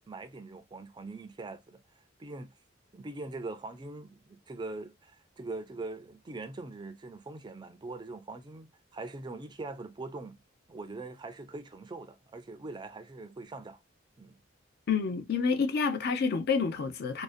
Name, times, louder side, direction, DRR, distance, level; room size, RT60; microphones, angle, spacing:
voice 1, 0.1-1.8 2.2-2.5 2.9-10.4 10.7-13.8 14.2-14.4, right 3 dB, 25° right, 0.3 m, -42 dB
voice 2, 14.9-17.2, left 5 dB, 55° left, 0.4 m, -28 dB
2.5 x 2.0 x 2.4 m
head